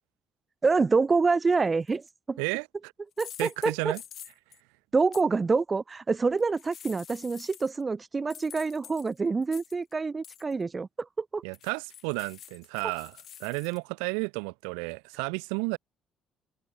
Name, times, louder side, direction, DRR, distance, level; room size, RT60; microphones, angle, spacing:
voice 1, 0.6-2.4 3.2-3.5 3.8-3.9 4.9-11.4, right 4 dB, 30° right, 0.3 m, -26 dB
sound 1, 1.9-2.1 3.1-4.6 5.1-5.2 6.4-7.8 8.3-9.9 10.2-10.5 11.5-13.8, left 10 dB, 60° left, 5.8 m, -48 dB
voice 2, 2.4-2.9 3.4-4.0 11.4-15.8, right 40 dB or more, 85° right, 1.0 m, -32 dB
open air
supercardioid pair, 60°, 0 cm